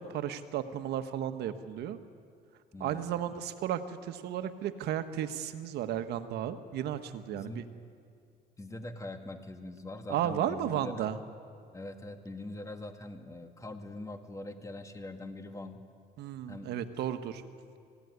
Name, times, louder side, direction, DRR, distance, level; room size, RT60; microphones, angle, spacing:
voice 1, 0.1-2.0 2.8-7.6 10.1-11.2 16.2-17.4, right 10 dB, 75° right, 10 dB, 1.3 m, -34 dB
voice 2, 2.7-3.3 7.3-7.7 8.6-11.1 11.7-15.8 16.5-16.7, left 2 dB, 20° left, 6 dB, 2.1 m, -43 dB
26.0 x 16.5 x 9.6 m, 2.3 s
cardioid pair, 110°, 17 cm